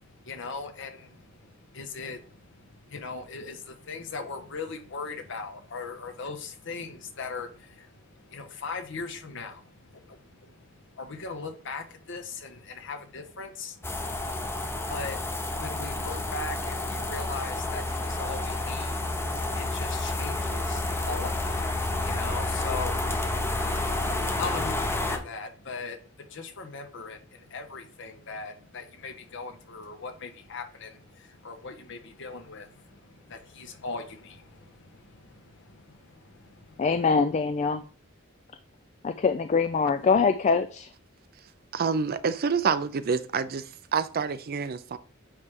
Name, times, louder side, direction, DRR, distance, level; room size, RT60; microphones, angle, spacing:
voice 1, 0.0-36.9, left 4 dB, 65° left, 1.1 m, -40 dB
sound 1, 13.8-25.2, left 2 dB, 10° left, 0.7 m, -30 dB
voice 2, 36.8-37.8 39.0-40.9, left 5 dB, 35° left, 0.3 m, -24 dB
voice 3, 41.7-43.6 43.9-45.0, right 5 dB, 50° right, 0.5 m, -27 dB
9.5 x 3.3 x 3.6 m
head